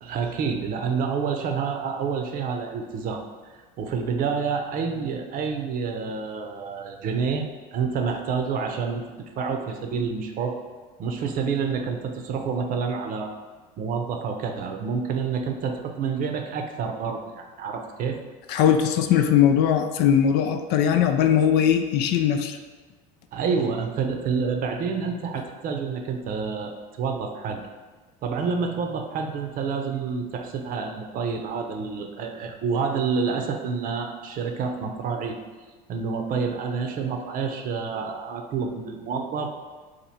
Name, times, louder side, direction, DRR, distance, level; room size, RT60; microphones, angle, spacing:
voice 1, 0.0-3.2 3.8-7.5 7.7-9.0 9.4-10.6 11.0-13.3 13.8-18.2 23.3-26.7 27.0-27.6 28.2-35.4 35.9-39.5, right 5 dB, 45° right, 4 dB, 0.6 m, -28 dB
voice 2, 18.5-22.6, left 9 dB, 60° left, 7 dB, 0.4 m, -20 dB
4.4 x 2.6 x 4.1 m, 1.3 s
supercardioid pair, 100°, 19 cm